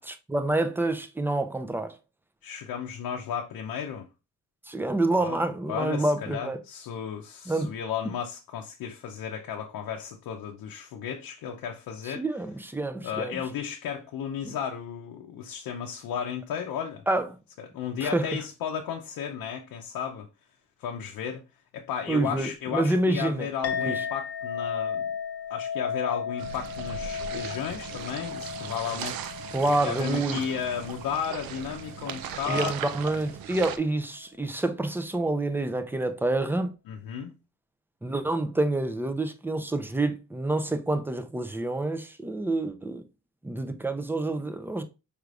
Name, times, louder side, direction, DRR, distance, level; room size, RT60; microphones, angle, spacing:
voice 1, 0.1-2.0 4.7-6.6 7.5-7.7 12.0-13.4 14.4-14.5 17.1-17.3 18.0-18.3 22.1-23.5 23.8-24.1 29.5-30.4 32.5-36.7 38.0-43.0 43.4-44.8, right 2 dB, 5° right, 0.4 m, -28 dB
voice 2, 2.4-4.1 5.2-5.4 5.7-12.2 13.0-17.0 17.6-20.3 20.8-21.4 21.7-25.1 25.5-29.2 29.8-32.9 36.9-37.3, left 8 dB, 80° left, 0.6 m, -34 dB
Chink clink, 23.6-32.3, left 7 dB, 45° left, 0.7 m, -35 dB
sound 1, 26.4-33.8, right 9 dB, 90° right, 0.5 m, -38 dB
4.8 x 3.3 x 2.4 m
cardioid pair, 115°, 34 cm